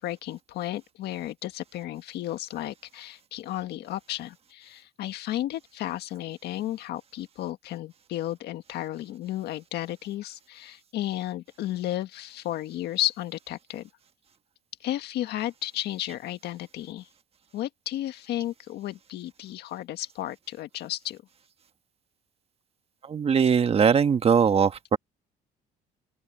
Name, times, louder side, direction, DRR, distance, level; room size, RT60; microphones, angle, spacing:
voice 1, 0.0-13.9 14.8-17.1 17.5-21.2, left 14 dB, 75° left, 1.7 m, -33 dB
voice 2, 23.1-25.0, right 6 dB, 35° right, 1.4 m, -21 dB
open air
cardioid pair, 110°, 17 cm